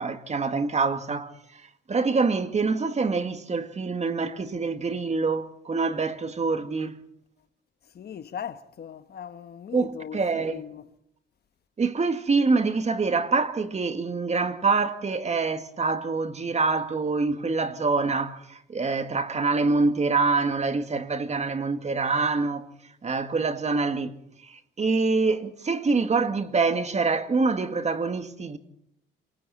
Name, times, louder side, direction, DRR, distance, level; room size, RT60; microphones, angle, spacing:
voice 1, 0.0-1.3 1.9-7.0 9.7-10.6 11.8-22.7 23.0-24.1 24.8-28.6, right 4 dB, 35° right, 2.2 m, -25 dB
voice 2, 7.9-10.9, left 8 dB, 55° left, 1.3 m, -39 dB
27.5 x 24.5 x 4.3 m
cardioid pair, 90°, 20 cm